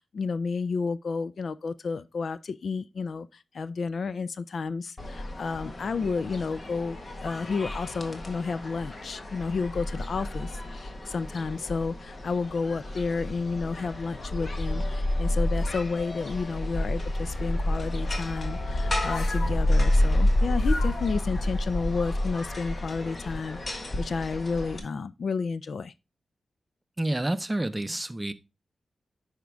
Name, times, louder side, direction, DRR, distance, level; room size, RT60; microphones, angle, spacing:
voice 1, 0.0-25.9, left 4 dB, 65° left, 0.4 m, -31 dB
sound 1, 5.0-24.8, left 1 dB, 45° left, 1.4 m, -29 dB
sound 2, 11.3-12.1 12.6-16.6 17.4-19.6 20.6-21.2, left 3 dB, 85° left, 1.6 m, -43 dB
voice 2, 27.0-28.3, right 1 dB, 15° right, 0.6 m, -29 dB
9.2 x 5.1 x 3.4 m
cardioid pair, 75°, 0 cm